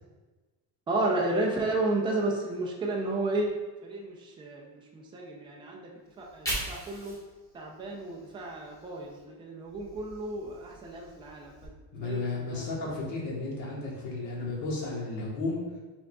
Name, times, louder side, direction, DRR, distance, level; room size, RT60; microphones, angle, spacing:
voice 1, 0.9-3.5 3.8-4.7 4.9-5.8 6.2-7.2 7.5-11.7 12.0-12.7, right 2 dB, 15° right, -1 dB, 0.4 m, -32 dB
Fire, 6.1-9.2 9.6-11.7, right 1 dB, 10° left, 1.3 m, -41 dB
voice 2, 11.9-15.6, left 3 dB, 50° left, -3 dB, 1.3 m, -33 dB
6.0 x 3.7 x 2.2 m, 1.2 s
cardioid pair, 170°, 38 cm